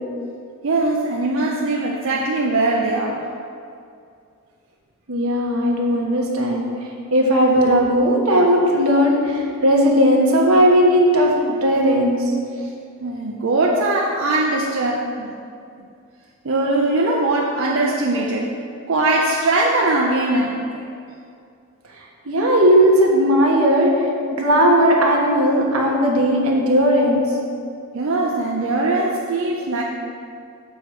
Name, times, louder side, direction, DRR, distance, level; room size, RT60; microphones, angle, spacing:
voice 1, 0.6-3.3 12.6-12.7 13.0-15.3 16.4-18.5 18.9-20.9 27.9-29.8, right 2 dB, 60° right, -2 dB, 0.6 m, -21 dB
voice 2, 5.1-6.7 7.1-12.2 22.2-24.1 24.4-27.2, equal, 85° right, -1 dB, 1.3 m, -16 dB
7.1 x 4.6 x 6.3 m, 2.4 s
head